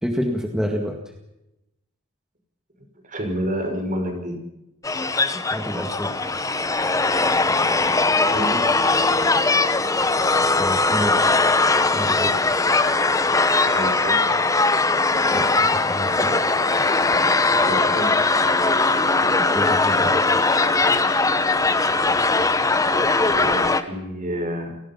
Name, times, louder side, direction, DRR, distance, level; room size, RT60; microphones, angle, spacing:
voice 1, 0.0-1.0 5.3-6.1 10.5-11.2 11.9-12.4 15.3-16.4 19.4-20.2, equal, 5° right, 3 dB, 1.9 m, -28 dB
voice 2, 2.8-4.4 8.2-8.7 13.7-14.3 17.5-18.2 22.7-24.8, equal, 40° right, 5 dB, 5.3 m, -29 dB
sound 1, 4.8-23.8, left 3 dB, 15° left, 1.1 m, -20 dB
28.5 x 19.0 x 5.9 m, 0.92 s
head